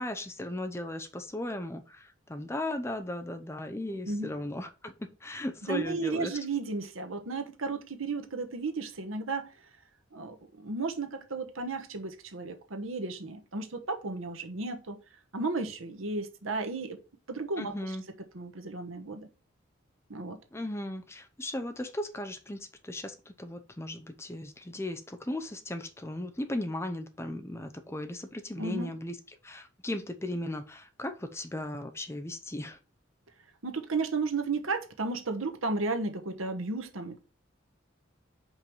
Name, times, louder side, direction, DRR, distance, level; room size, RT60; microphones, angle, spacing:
voice 1, 0.0-4.9 5.2-6.3 17.6-18.1 20.5-29.1 29.4-32.8, left 1 dB, 15° left, 0.6 m, -36 dB
voice 2, 5.7-9.5 10.1-15.0 15.3-17.0 17.3-18.0 18.3-19.3 20.1-20.4 28.6-28.9 33.6-37.2, right 3 dB, 85° right, 1.2 m, -34 dB
5.3 x 4.6 x 5.3 m
head